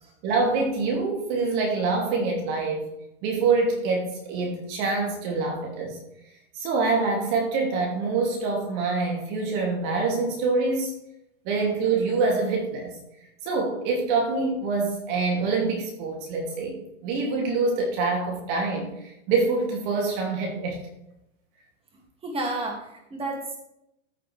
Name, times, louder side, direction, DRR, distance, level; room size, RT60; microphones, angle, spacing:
voice 1, 0.2-2.9 3.2-6.0 6.5-10.9 11.4-13.0 13.4-16.8 17.0-20.8, right 4 dB, 45° right, 0 dB, 2.8 m, -25 dB
voice 2, 22.2-23.6, right 2 dB, 15° right, 1 dB, 2.4 m, -31 dB
14.5 x 6.1 x 3.4 m, 0.84 s
supercardioid pair, 145°, 36 cm